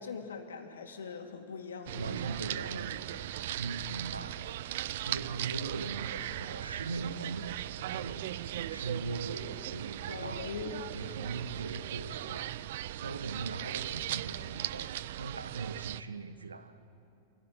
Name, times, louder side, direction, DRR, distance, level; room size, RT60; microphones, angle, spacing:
voice 1, 0.0-2.2 10.1-10.9, left 6 dB, 65° left, 2.5 m, -41 dB
sound 1, 1.9-16.0, right 13 dB, 55° right, 0.5 m, -38 dB
voice 2, 1.9-4.6 5.0-10.5 10.9-12.6 13.0-16.8, right 4 dB, 75° right, 1.2 m, -40 dB
25.5 x 16.5 x 9.2 m
figure-of-eight pair, 90°, 0 cm